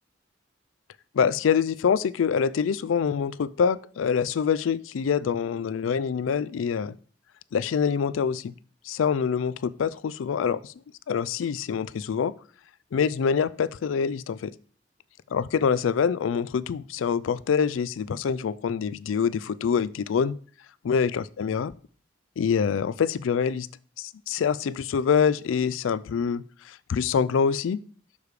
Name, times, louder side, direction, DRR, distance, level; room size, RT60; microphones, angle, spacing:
voice 1, 1.1-6.9 7.5-8.5 8.9-10.7 11.1-12.3 12.9-14.5 15.3-20.4 20.8-21.7 22.4-23.7 24.0-27.8, left 6 dB, 90° left, 18 dB, 0.4 m, -25 dB
6.8 x 4.8 x 4.9 m, 0.43 s
head